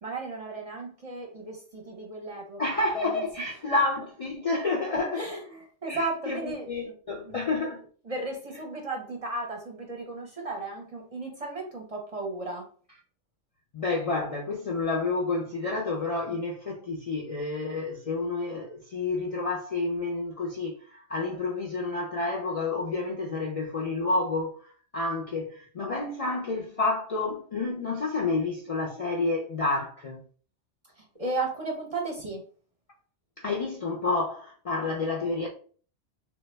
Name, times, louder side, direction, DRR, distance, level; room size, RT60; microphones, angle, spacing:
voice 1, 0.0-3.8 5.1-7.0 7.2-7.4 8.0-12.6 31.0-32.4, right 2 dB, 40° right, 0.6 m, -35 dB
voice 2, 2.6-5.4 5.9-7.9 13.7-30.2 33.4-35.5, left 3 dB, 50° left, 0.4 m, -29 dB
3.4 x 2.1 x 3.2 m
omnidirectional pair, 1.2 m